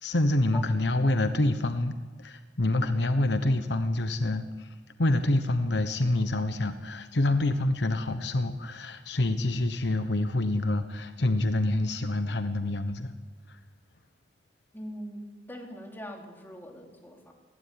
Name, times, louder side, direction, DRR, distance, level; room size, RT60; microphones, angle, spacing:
voice 1, 0.0-13.1 13.5-13.6, left 2 dB, 70° left, 9 dB, 1.1 m, -27 dB
voice 2, 14.7-15.2 15.5-17.3, equal, 10° left, 0 dB, 3.6 m, -41 dB
20.0 x 15.5 x 10.0 m, 1.3 s
head